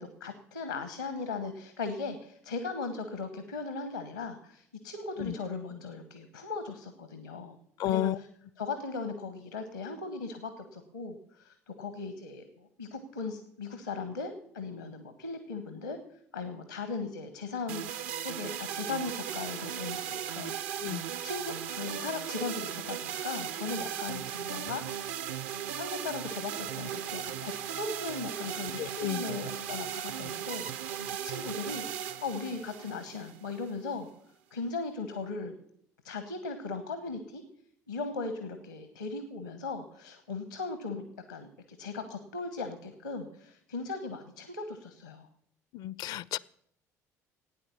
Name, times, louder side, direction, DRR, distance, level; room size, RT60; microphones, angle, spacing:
voice 1, 0.0-7.6 7.8-8.3 8.6-16.0 16.3-20.9 21.2-25.1 25.8-34.1 34.5-35.5 36.0-37.4 37.9-45.3, left 4 dB, 85° left, 9 dB, 1.1 m, -38 dB
voice 2, 7.8-8.2 20.8-21.0 28.8-29.2 45.7-46.4, left 13 dB, 50° left, 22 dB, 0.4 m, -32 dB
sound 1, 17.7-33.7, right 9 dB, 65° right, 0.6 m, -37 dB
14.5 x 9.1 x 7.1 m, 0.70 s
figure-of-eight pair, 55°, 9 cm